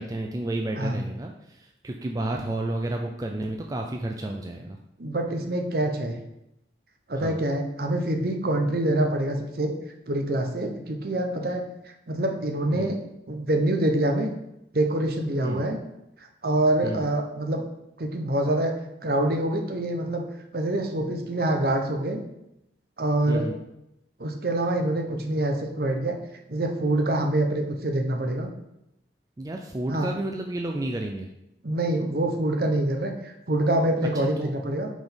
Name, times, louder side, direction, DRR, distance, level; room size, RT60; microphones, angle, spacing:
voice 1, 0.0-4.8 7.2-7.5 12.8-13.0 15.4-15.6 16.8-17.1 23.3-23.5 29.4-31.3 34.1-34.5, right 1 dB, 20° right, 2 dB, 0.3 m, -31 dB
voice 2, 5.0-6.2 7.1-9.7 10.1-11.6 12.1-13.0 13.3-14.3 14.7-15.8 16.4-17.6 18.0-18.7 19.0-20.2 20.5-22.2 23.0-23.5 24.2-26.2 26.5-28.5 29.9-30.1 31.6-34.9, right 1 dB, 55° right, 3 dB, 0.8 m, -25 dB
5.0 x 3.9 x 5.2 m, 0.85 s
head